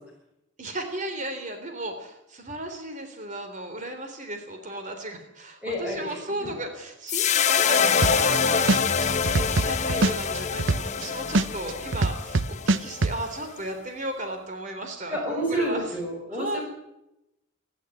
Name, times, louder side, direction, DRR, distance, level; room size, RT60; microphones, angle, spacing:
voice 1, 0.6-15.8 16.3-16.6, right 1 dB, 35° right, 6 dB, 3.6 m, -35 dB
voice 2, 5.6-6.5 15.1-16.6, equal, 5° right, -3 dB, 6.1 m, -30 dB
sound 1, 7.1-13.5, left 6 dB, 35° left, 1.1 m, -25 dB
sound 2, 8.0-8.4 8.7-11.0 11.3-13.1, right 2 dB, 65° right, 0.7 m, -22 dB
28.5 x 11.5 x 9.7 m, 0.88 s
head